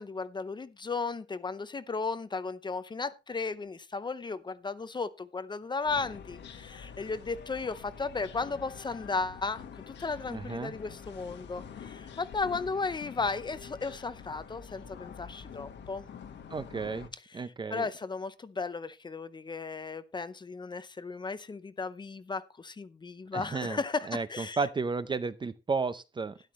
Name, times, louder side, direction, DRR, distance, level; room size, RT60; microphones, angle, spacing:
voice 1, 0.0-16.1 17.1-24.7, left 4 dB, 25° left, 0.7 m, -35 dB
sound 1, 5.8-17.1, left 7 dB, 75° left, 1.6 m, -46 dB
voice 2, 10.3-10.7 16.5-17.1 17.3-17.9 23.3-23.8 24.1-26.4, right 4 dB, 25° right, 0.6 m, -33 dB
12.5 x 11.5 x 3.2 m
wide cardioid pair, 170°, 19 cm